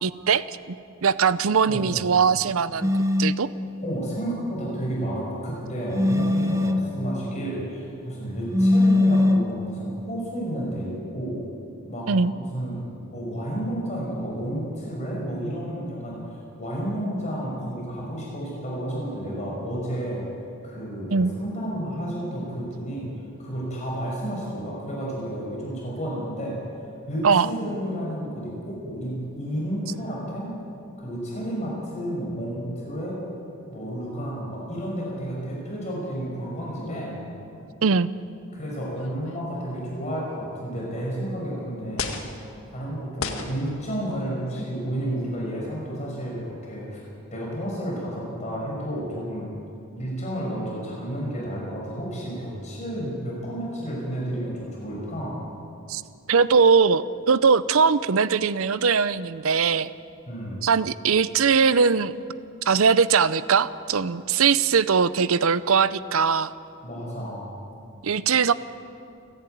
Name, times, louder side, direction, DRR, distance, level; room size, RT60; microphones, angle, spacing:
voice 1, 0.0-0.8 1.0-2.9 3.2-3.5 12.1-12.3 21.1-21.3 27.2-27.5 37.8-38.1 55.9-56.0 56.3-59.9 60.6-62.1 62.7-66.5 68.0-68.5, right 5 dB, 75° right, 16 dB, 0.6 m, -20 dB
sound 1, 2.8-3.4 5.9-6.9 8.5-9.5, left 2 dB, 15° right, 0.9 m, -20 dB
voice 2, 3.8-11.4 11.9-20.2 20.6-23.1 23.4-26.6 27.1-30.6 31.0-33.2 33.7-37.2 38.5-42.1 42.7-47.0 47.3-49.5 50.0-55.4 60.3-60.6 66.8-67.5, right 1 dB, 35° left, -4 dB, 5.6 m, -31 dB
sound 2, 38.9-39.9 40.8-40.9 42.0-42.3 43.1-43.7 44.5-44.8, left 4 dB, 70° left, 1.8 m, -34 dB
29.0 x 11.0 x 9.3 m, 2.6 s
head